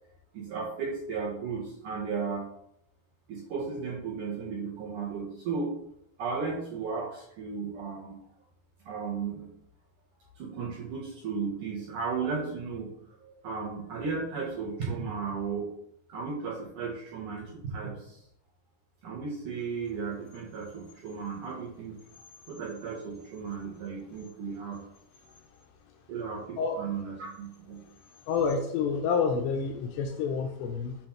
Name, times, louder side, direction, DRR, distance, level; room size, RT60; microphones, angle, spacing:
voice 1, 0.3-2.4 3.3-5.8 6.2-8.2 8.9-9.5 10.4-15.7 16.1-18.2 19.0-22.0 22.5-24.8 26.1-27.8, right 5 dB, 70° right, -4 dB, 1.9 m, -35 dB
voice 2, 28.3-31.0, left 5 dB, 80° left, 3 dB, 2.5 m, -28 dB
7.7 x 2.8 x 5.7 m, 0.76 s
omnidirectional pair, 5.2 m